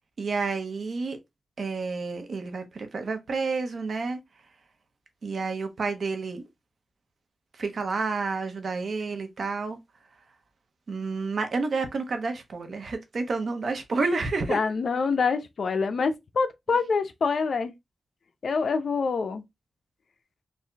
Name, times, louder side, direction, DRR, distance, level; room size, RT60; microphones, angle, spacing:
voice 1, 0.2-1.2 1.6-4.2 5.2-6.5 7.5-9.8 10.9-14.6, right 4 dB, 65° right, 1.1 m, -30 dB
voice 2, 14.5-17.7 18.4-19.4, left 5 dB, 70° left, 0.6 m, -26 dB
4.2 x 2.6 x 3.4 m
cardioid pair, 75°, 0 cm